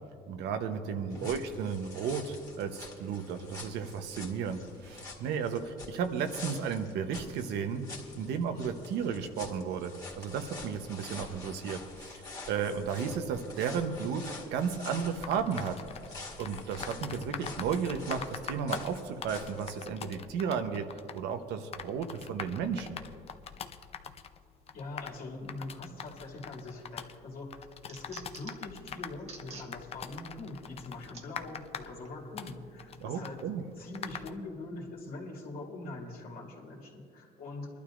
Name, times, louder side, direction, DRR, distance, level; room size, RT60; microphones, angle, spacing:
voice 1, 0.3-7.9 8.1-12.2 12.5-15.8 16.4-20.8 21.1-23.0 33.0-33.6, right 6 dB, 85° right, 7 dB, 0.9 m, -34 dB
voice 2, 0.9-1.3 24.7-27.6 27.9-33.4 33.8-37.7, left 2 dB, 60° left, -2 dB, 2.5 m, -43 dB
sound 1, 1.1-19.8, left 3 dB, 20° left, 2.0 m, -47 dB
sound 2, 15.1-34.3, left 7 dB, 35° left, 0.5 m, -44 dB
sound 3, 26.6-27.0 27.4-28.7 29.2-29.7 30.2-30.3 31.1-31.3 32.0-32.2, right 4 dB, 40° right, 1.3 m, -48 dB
23.5 x 12.0 x 2.5 m, 2.4 s
cardioid pair, 110°, 17 cm